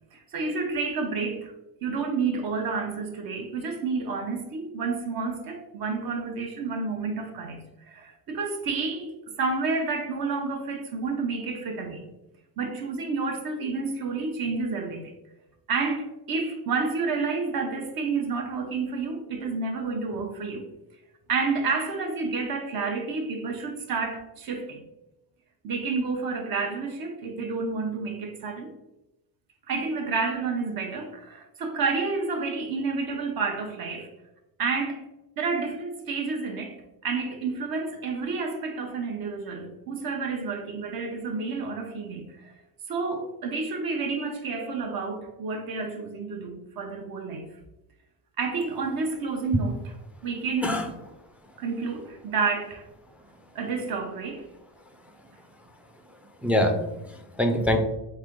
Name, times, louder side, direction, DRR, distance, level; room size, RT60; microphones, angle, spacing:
voice 1, 0.1-1.5 1.8-9.1 9.4-12.1 12.6-15.1 15.7-20.7 21.3-24.8 25.6-28.7 29.7-34.1 34.6-35.0 35.4-36.8 37.0-42.5 42.9-47.5 48.4-49.8 50.2-50.8 51.6-52.9 53.5-54.5, right 4 dB, 55° right, 0.7 m, -30 dB
voice 2, 56.4-57.8, left 1 dB, 5° right, 0.3 m, -24 dB
3.7 x 3.2 x 3.6 m
cardioid pair, 120°, 42 cm